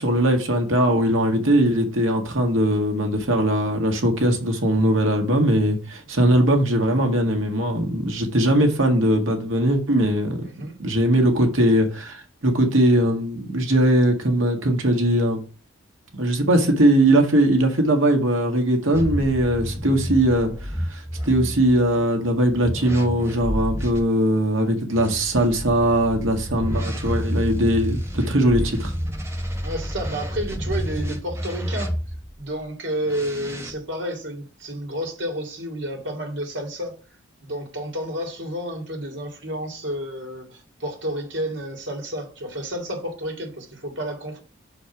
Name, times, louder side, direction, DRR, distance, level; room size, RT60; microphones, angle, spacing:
voice 1, 0.0-10.4 10.8-15.4 16.1-28.9, right 1 dB, 80° right, 1.8 m, -20 dB
voice 2, 10.4-10.7 29.6-31.9 32.4-36.9 37.4-44.4, equal, 65° right, 2.4 m, -30 dB
sound 1, 18.9-24.0 24.9-32.3 33.0-33.7, equal, 15° right, 1.2 m, -29 dB
6.4 x 4.6 x 5.8 m
head